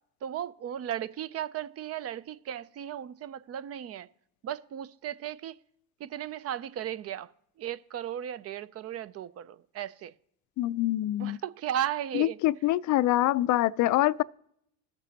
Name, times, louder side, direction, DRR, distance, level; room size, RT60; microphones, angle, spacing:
voice 1, 0.2-4.1 4.4-5.6 6.0-7.3 7.6-10.1 11.2-12.4, right 10 dB, 35° right, 0.4 m, -35 dB
voice 2, 10.6-11.4 12.1-14.2, left 15 dB, 45° left, 0.4 m, -25 dB
19.0 x 6.7 x 2.8 m
supercardioid pair, 85°, 41 cm